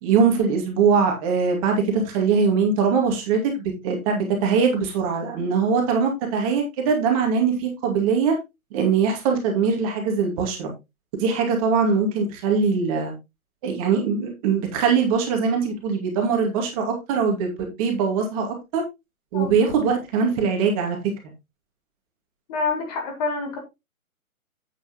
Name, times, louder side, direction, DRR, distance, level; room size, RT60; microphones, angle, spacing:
voice 1, 0.0-8.3 8.7-10.7 11.2-13.1 13.6-18.8 19.3-21.0, right 5 dB, 25° right, 2.3 m, -22 dB
voice 2, 22.5-23.6, left 4 dB, 30° left, 2.0 m, -27 dB
9.2 x 8.7 x 2.9 m
figure-of-eight pair, 140°, 42 cm